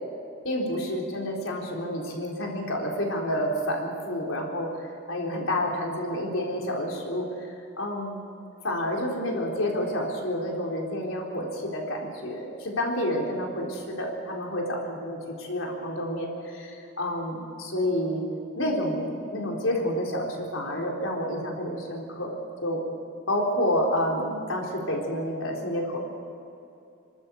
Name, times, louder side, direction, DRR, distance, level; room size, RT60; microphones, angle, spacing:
voice 1, 0.4-4.7 5.1-7.5 7.8-8.2 8.6-18.2 18.6-22.4 22.6-22.8 23.3-26.0, equal, 80° left, -1 dB, 4.0 m, -29 dB
29.0 x 12.5 x 8.2 m, 2.7 s
head